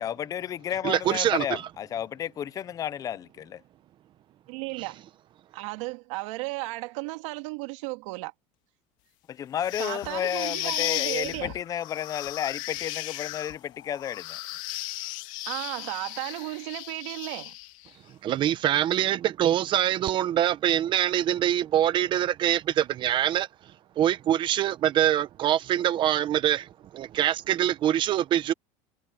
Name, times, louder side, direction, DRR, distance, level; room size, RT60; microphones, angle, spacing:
voice 1, 0.0-3.6 9.3-14.4, left 10 dB, 20° left, 0.4 m, -32 dB
voice 2, 0.8-1.6 18.2-23.5 24.0-28.5, right 11 dB, 30° right, 0.8 m, -24 dB
voice 3, 4.5-5.0 5.5-8.3 9.8-11.6 15.5-17.6, right 23 dB, 80° right, 2.5 m, -34 dB
sound 1, 9.6-17.9, left 18 dB, 50° left, 2.4 m, -35 dB
cardioid pair, 175°, 16 cm